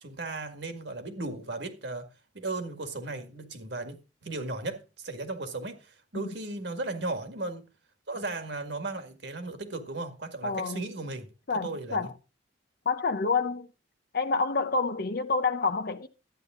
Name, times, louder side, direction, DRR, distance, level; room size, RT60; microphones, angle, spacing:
voice 1, 0.0-2.1 2.3-7.7 8.1-11.3 11.6-12.1, right 2 dB, 65° right, 2.0 m, -36 dB
voice 2, 10.4-10.8 11.5-12.1 12.9-13.7 14.1-16.1, left 4 dB, 55° left, 0.8 m, -28 dB
12.5 x 9.8 x 3.7 m
head